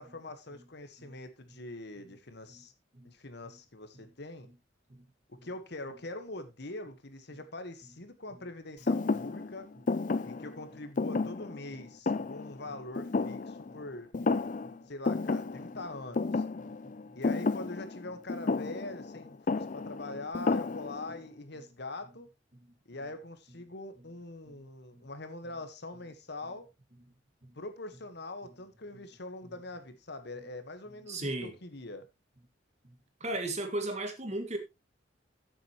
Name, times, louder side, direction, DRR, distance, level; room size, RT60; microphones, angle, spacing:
voice 1, 0.0-2.7 3.0-4.5 5.3-9.7 10.2-14.1 14.9-16.4 17.1-22.3 22.8-26.7 27.5-32.1, left 2 dB, 60° left, 1.5 m, -43 dB
Thump thud, 8.9-13.9 14.1-14.8 15.1-21.2, left 3 dB, 45° left, 0.5 m, -32 dB
voice 2, 31.1-31.5 32.8-32.9 33.2-34.6, right 2 dB, 35° right, 2.1 m, -37 dB
14.5 x 7.7 x 3.1 m
head